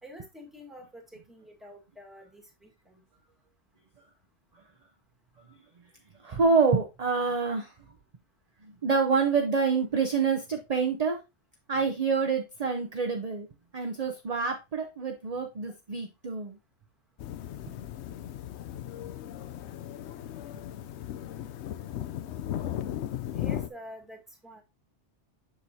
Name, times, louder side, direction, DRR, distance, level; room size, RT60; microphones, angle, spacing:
voice 1, 0.0-3.0 23.3-24.6, equal, ahead, 2 dB, 1.5 m, -48 dB
voice 2, 6.2-7.7 8.6-11.2 11.7-13.5 13.7-16.6, right 5 dB, 40° right, 3 dB, 0.8 m, -27 dB
sound 1, 17.2-23.7, left 11 dB, 75° left, 0.8 m, -36 dB
7.1 x 6.0 x 2.7 m, 0.24 s
omnidirectional pair, 1.2 m